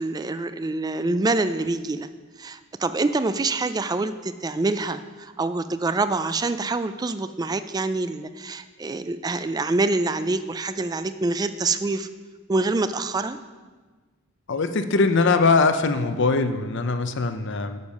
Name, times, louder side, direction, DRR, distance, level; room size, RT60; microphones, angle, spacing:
voice 1, 0.0-2.1 2.4-12.1 12.5-13.4, right 3 dB, 20° right, 12 dB, 0.3 m, -26 dB
voice 2, 14.5-17.8, left 3 dB, 60° left, 9 dB, 0.6 m, -21 dB
9.3 x 7.2 x 5.3 m, 1.4 s
head